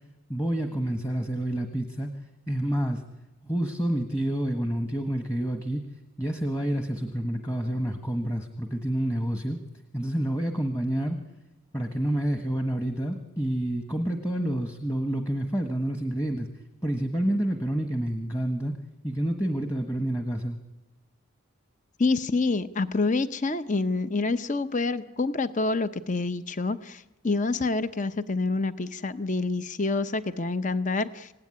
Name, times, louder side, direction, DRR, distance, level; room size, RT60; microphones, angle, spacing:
voice 1, 0.3-2.1 2.5-3.0 3.4-5.8 6.2-9.6 9.9-11.2 11.7-16.5 16.8-18.7 19.0-20.6, right 1 dB, 15° left, 6 dB, 1.4 m, -28 dB
voice 2, 22.0-31.3, left 3 dB, 35° left, 13 dB, 0.8 m, -27 dB
26.5 x 17.0 x 9.9 m, 1.0 s
head